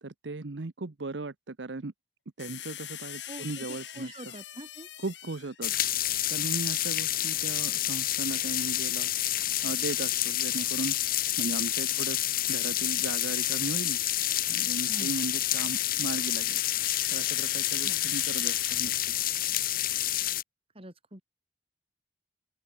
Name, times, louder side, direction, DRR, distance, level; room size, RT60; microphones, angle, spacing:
voice 1, 0.0-1.9 2.4-4.4 5.0-5.7 6.3-9.1 9.6-11.0 11.4-12.2 12.5-14.0 14.5-16.6 17.1-18.9 19.2-19.3, right 3 dB, 85° right, 0.9 m, -37 dB
sound 1, 2.4-5.7 8.6-10.0 11.8-12.0 14.1-19.2, left 12 dB, 90° left, 2.5 m, -43 dB
voice 2, 3.3-4.9 14.9-15.2 17.8-18.1 20.7-21.2, right 1 dB, 35° right, 4.9 m, -45 dB
sound 2, 5.6-20.4, left 13 dB, 55° left, 1.4 m, -29 dB
open air
head